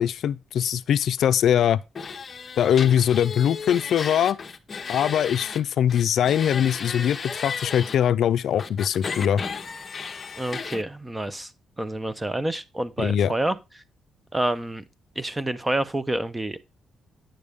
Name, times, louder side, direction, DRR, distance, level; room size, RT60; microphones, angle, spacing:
voice 1, 0.0-1.8 2.6-4.4 4.9-9.4 13.0-13.3, left 9 dB, 70° left, 0.4 m, -22 dB
sound 1, 1.9-5.6 5.9-8.0 8.6-10.8, left 5 dB, 35° left, 0.8 m, -34 dB
voice 2, 10.4-11.5 11.8-13.6 14.3-14.8 15.2-16.6, right 1 dB, 15° right, 0.6 m, -28 dB
9.1 x 6.8 x 3.5 m
cardioid pair, 125°, 0 cm